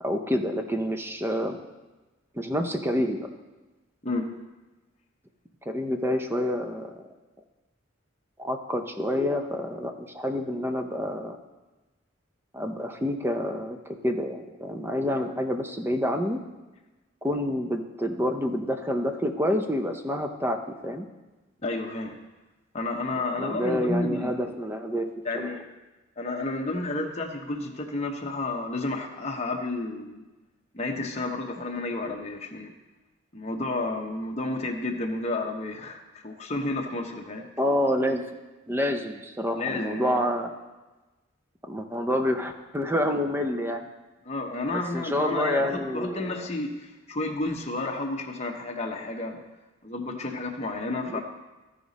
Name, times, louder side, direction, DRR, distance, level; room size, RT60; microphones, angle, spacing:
voice 1, 0.0-1.6 2.3-3.3 5.7-7.0 8.4-11.4 12.5-13.8 14.0-16.4 17.2-21.1 23.4-25.1 25.4-25.5 37.6-38.2 38.7-40.5 41.6-43.9 44.7-46.5 51.1-51.2, equal, 10° right, 6 dB, 0.6 m, -28 dB
voice 2, 21.6-22.1 22.7-24.5 25.2-25.6 26.2-30.2 30.7-32.7 33.3-37.5 39.5-40.2 44.2-49.4 49.8-51.2, left 2 dB, 30° left, 2 dB, 0.9 m, -31 dB
14.5 x 5.0 x 4.1 m, 1.2 s
head